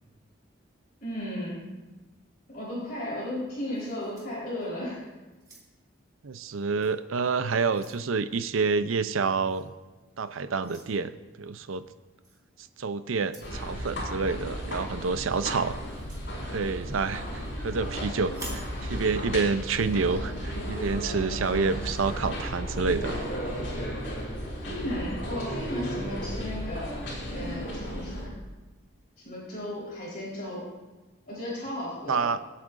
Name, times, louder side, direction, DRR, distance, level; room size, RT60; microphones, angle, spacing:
voice 1, 1.0-1.6 2.5-5.1 24.6-27.0 27.3-28.3 29.2-30.7 31.3-32.3, left 1 dB, 45° left, -6 dB, 4.0 m, -35 dB
sound 1, 3.7-4.9 5.3-6.0 6.8-7.0 7.4-8.1 9.5-9.7 10.6-10.9 12.2-12.4 13.2-13.6 15.8-16.3 18.3-18.7, right 2 dB, 15° right, 1.8 m, -47 dB
voice 2, 6.2-9.7 10.2-11.1 11.4-11.8 12.8-15.8 16.5-23.2 32.1-32.4, right 4 dB, 85° right, 12 dB, 0.6 m, -28 dB
sound 2, 13.4-28.2, equal, 60° left, 4.7 m, -34 dB
24.5 x 8.4 x 2.6 m, 1.2 s
head